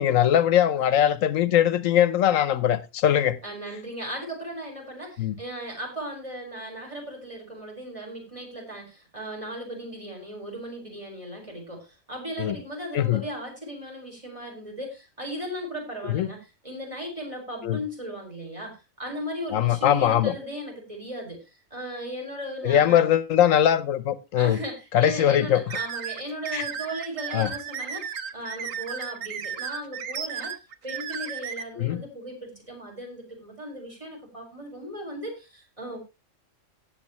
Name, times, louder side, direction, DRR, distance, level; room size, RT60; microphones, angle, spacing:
voice 1, 0.0-3.4 5.2-5.3 12.4-12.6 12.9-13.2 16.0-16.3 17.6-17.8 19.5-20.3 22.6-24.6 24.9-25.6 26.5-26.6 27.3-27.5 31.8-32.0, left 10 dB, 80° left, 1.1 m, -21 dB
voice 2, 3.4-23.1 24.3-30.5 30.8-36.0, equal, 25° right, 4.6 m, -37 dB
sound 1, 25.7-31.6, right 7 dB, 80° right, 1.3 m, -34 dB
18.0 x 7.6 x 3.0 m
omnidirectional pair, 1.4 m